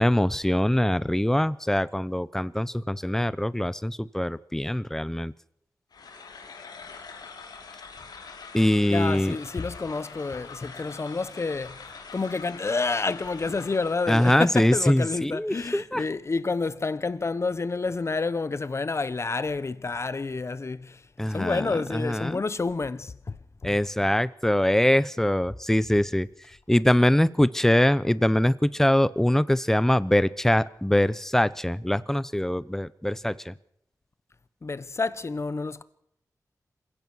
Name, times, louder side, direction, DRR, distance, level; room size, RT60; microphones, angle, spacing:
voice 1, 0.0-5.3 8.5-9.4 14.1-16.0 21.2-22.4 23.6-26.3 26.7-33.5, left 1 dB, 5° left, 0.7 m, -23 dB
sound 1, 5.9-14.3, left 5 dB, 90° left, 2.4 m, -44 dB
voice 2, 8.9-11.8 12.1-21.0 21.3-23.4 23.6-23.8 34.6-35.8, left 4 dB, 45° left, 1.1 m, -29 dB
27.0 x 16.5 x 6.3 m
wide cardioid pair, 90°, 7 cm